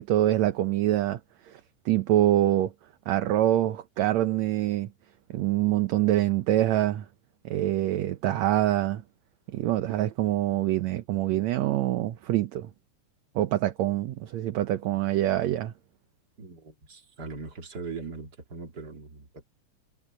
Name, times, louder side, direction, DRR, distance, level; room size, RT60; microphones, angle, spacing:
voice 1, 0.0-1.6 1.9-2.7 3.1-4.9 5.3-7.1 7.5-9.0 9.5-12.7 13.4-15.7, right 14 dB, 70° right, 2.0 m, -25 dB
voice 2, 16.4-19.4, right 4 dB, 30° right, 3.2 m, -40 dB
omnidirectional pair, 3.6 m